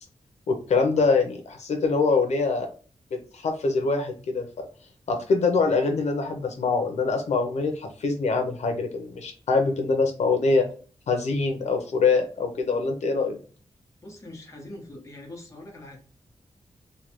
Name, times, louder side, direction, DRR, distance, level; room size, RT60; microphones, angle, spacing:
voice 1, 0.5-2.7 3.1-4.5 5.1-10.7 11.1-13.4, left 4 dB, 90° left, 4 dB, 0.6 m, -24 dB
voice 2, 14.0-16.0, left 1 dB, 25° left, -1 dB, 1.0 m, -42 dB
3.2 x 2.2 x 2.9 m, 0.39 s
wide cardioid pair, 160°, 11 cm